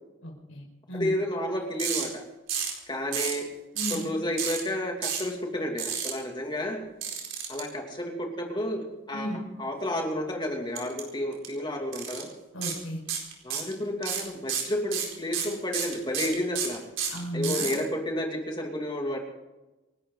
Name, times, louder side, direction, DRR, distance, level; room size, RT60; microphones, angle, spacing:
voice 1, 0.2-1.1 3.7-4.0 9.1-9.4 12.5-13.0 17.1-17.8, equal, 85° left, 0 dB, 5.4 m, -34 dB
voice 2, 0.9-2.3 2.9-3.5 3.9-6.8 7.5-9.3 9.6-12.3 13.4-16.8 17.3-19.2, left 1 dB, 20° left, 1 dB, 2.8 m, -31 dB
sound 1, 1.8-2.1 2.5-2.8 3.1-3.4 3.8-4.0 4.4-4.6 5.0-5.3 5.8-6.1 7.0-7.6 10.8-11.0 11.3-11.5 11.9-12.2 12.6-12.8 13.1-13.7 14.0-17.8, right 8 dB, 80° right, 4.3 m, -30 dB
28.0 x 12.5 x 4.1 m, 1.0 s
head